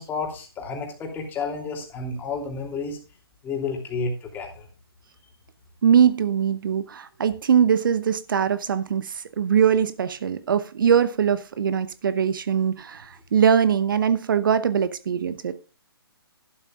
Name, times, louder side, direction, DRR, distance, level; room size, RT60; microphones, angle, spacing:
voice 1, 0.0-3.0 3.4-4.7, left 4 dB, 15° left, 2.8 m, -31 dB
voice 2, 5.8-15.5, right 8 dB, 55° right, 0.8 m, -21 dB
12.5 x 11.5 x 2.4 m
figure-of-eight pair, 140°, 13 cm